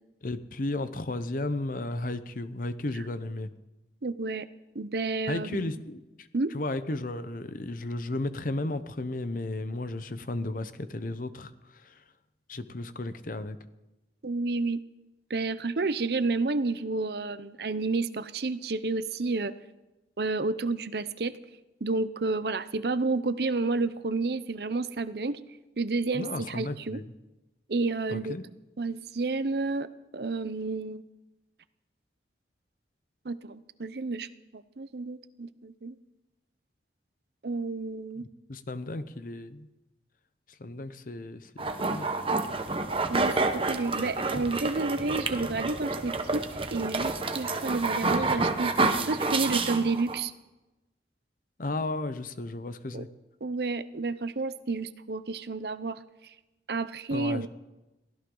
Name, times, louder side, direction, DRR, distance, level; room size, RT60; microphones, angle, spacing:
voice 1, 0.2-3.5 5.3-6.3 6.5-12.0 12.5-13.6 26.1-27.1 28.1-28.4 38.2-39.7 40.5-42.1 51.6-53.1 57.1-57.5, left 2 dB, 50° left, 12 dB, 0.8 m, -34 dB
voice 2, 4.0-4.5 4.7-5.7 6.3-6.5 14.2-14.8 15.3-19.5 20.2-21.4 21.8-25.4 25.8-27.0 27.7-28.3 28.8-29.9 30.1-31.0 33.2-36.0 37.4-38.2 43.1-50.3 52.9-53.0 53.4-56.0 56.7-57.5, right 3 dB, 60° right, 14 dB, 0.7 m, -30 dB
sound 1, 41.6-50.2, right 3 dB, 30° right, 1.0 m, -29 dB
23.0 x 16.0 x 3.9 m, 1.0 s
head